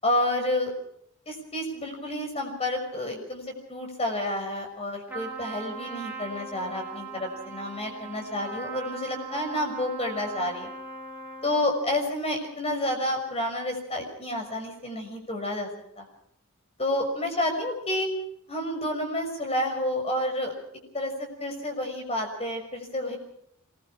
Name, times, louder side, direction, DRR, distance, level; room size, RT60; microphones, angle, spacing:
voice 1, 0.0-0.7 1.3-3.4 3.7-10.7 11.4-15.7 16.0-16.1 16.8-18.1 18.5-20.5 20.9-23.2, left 1 dB, 30° left, 3 dB, 6.0 m, -29 dB
Trumpet, 5.1-11.8, right 4 dB, 10° right, 2.7 m, -39 dB
26.0 x 21.0 x 5.0 m, 0.70 s
head